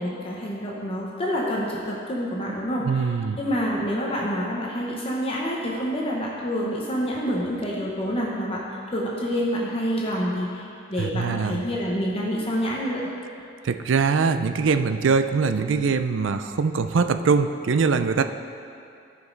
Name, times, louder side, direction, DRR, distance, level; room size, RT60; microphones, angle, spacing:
voice 1, 0.0-3.1 3.4-8.6 8.9-13.0, equal, 30° left, -4 dB, 1.0 m, -27 dB
voice 2, 2.8-3.4 11.0-11.6 13.6-18.2, right 5 dB, 75° right, 9 dB, 0.4 m, -22 dB
14.0 x 5.2 x 3.9 m, 2.5 s
head